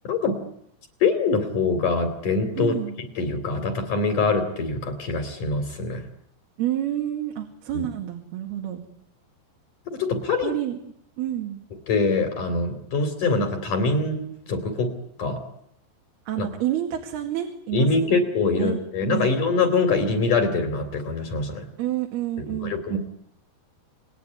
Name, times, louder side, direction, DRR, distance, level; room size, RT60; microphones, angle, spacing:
voice 1, 0.0-0.4 1.0-6.0 7.7-7.9 9.9-10.5 11.9-14.2 14.5-14.9 15.2-15.4 16.4-16.5 17.7-21.7 22.5-23.0, left 3 dB, 50° left, 7 dB, 4.5 m, -24 dB
voice 2, 2.6-3.0 6.6-8.8 10.4-10.8 11.2-11.6 16.3-18.2 18.5-18.8 19.1-19.3 21.8-23.0, right 12 dB, 70° right, 3 dB, 4.1 m, -29 dB
29.5 x 20.5 x 9.8 m, 0.75 s
omnidirectional pair, 4.8 m